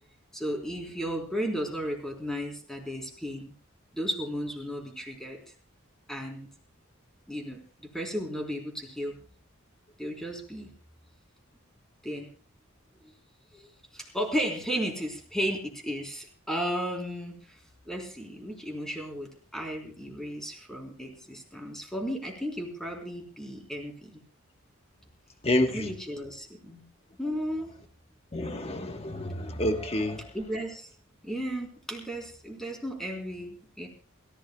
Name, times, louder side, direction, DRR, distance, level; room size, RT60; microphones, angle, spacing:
voice 1, 0.3-3.5 3.9-5.4 6.1-6.5 7.3-9.2 10.0-10.7 12.0-12.3 13.5-13.7 13.9-17.5 17.9-24.2 25.7-26.8 27.2-27.7 30.3-30.9 31.2-33.9, equal, ahead, 1 dB, 4.0 m, -34 dB
voice 2, 25.4-25.9 28.3-30.3, left 1 dB, 30° left, 5 dB, 1.4 m, -28 dB
28.0 x 15.0 x 2.4 m, 0.40 s
head